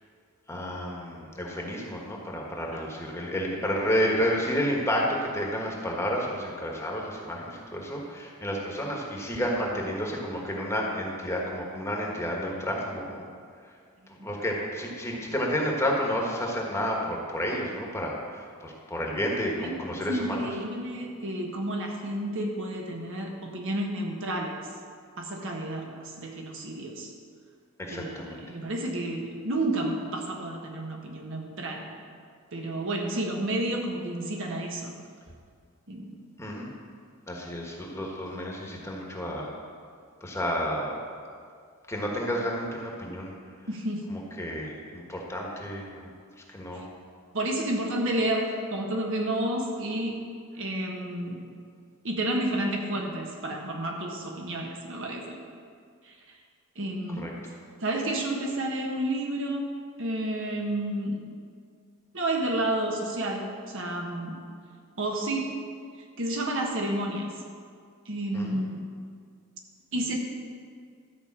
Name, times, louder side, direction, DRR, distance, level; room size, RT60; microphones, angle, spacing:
voice 1, 0.5-13.3 13.6-13.7 14.1-20.5 27.8-28.4 36.4-36.7 37.3-39.5 40.2-41.0 41.9-43.3 44.1-46.1 46.5-46.8 57.2-57.3 68.3-68.6, equal, 10° left, -2 dB, 1.4 m, -31 dB
voice 2, 19.6-24.6 25.2-27.1 27.9-31.9 32.5-34.9 35.9-36.2 43.7-44.2 47.3-50.2 50.5-51.4 52.0-55.4 56.0-56.4 56.7-57.4 57.8-61.2 62.1-64.4 65.0-65.6 66.2-67.4 68.0-68.8 69.9-70.2, right 1 dB, 60° right, 1 dB, 1.4 m, -31 dB
13.0 x 5.3 x 7.3 m, 2.1 s
head